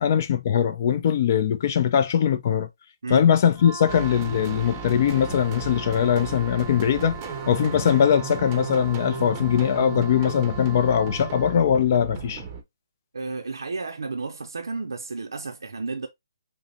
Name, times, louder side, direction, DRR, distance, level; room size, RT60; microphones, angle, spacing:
voice 1, 0.0-2.7 3.1-7.2 7.5-12.4, left 8 dB, 40° left, 0.4 m, -21 dB
Wind instrument woodwind instrument, 3.5-11.7, right 3 dB, 10° left, 1.9 m, -41 dB
sound 1, 3.9-12.6, right 6 dB, 25° right, 0.7 m, -35 dB
voice 2, 13.1-16.1, right 3 dB, 85° right, 0.5 m, -32 dB
5.2 x 2.1 x 2.8 m
hypercardioid pair, 155°, 2 cm